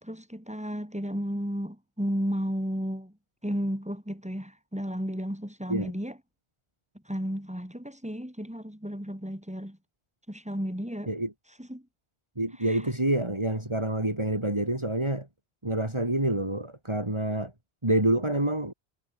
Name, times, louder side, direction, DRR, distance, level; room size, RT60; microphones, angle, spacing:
voice 1, 0.0-3.1 3.4-6.2 7.1-9.8 10.3-11.1 11.6-11.8 12.6-12.8, equal, 5° right, 6.0 m, -33 dB
voice 2, 12.4-15.3 15.6-17.5 17.8-18.7, right 1 dB, 25° right, 3.9 m, -27 dB
omnidirectional pair, 1.1 m